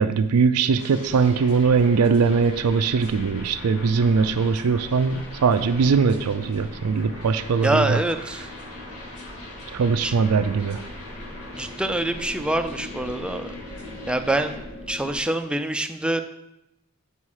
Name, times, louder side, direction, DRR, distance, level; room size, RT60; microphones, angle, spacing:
voice 1, 0.0-8.0 9.7-10.8, right 5 dB, 85° right, 9 dB, 0.4 m, -21 dB
sound 1, 0.8-14.6, left 1 dB, 75° left, 2.0 m, -42 dB
sound 2, 1.0-15.2, left 1 dB, 30° left, 1.8 m, -41 dB
voice 2, 7.6-8.5 10.0-10.1 11.5-13.5 14.1-14.6 14.9-16.2, right 1 dB, 5° right, 7 dB, 0.4 m, -25 dB
8.2 x 5.5 x 4.8 m, 0.90 s
head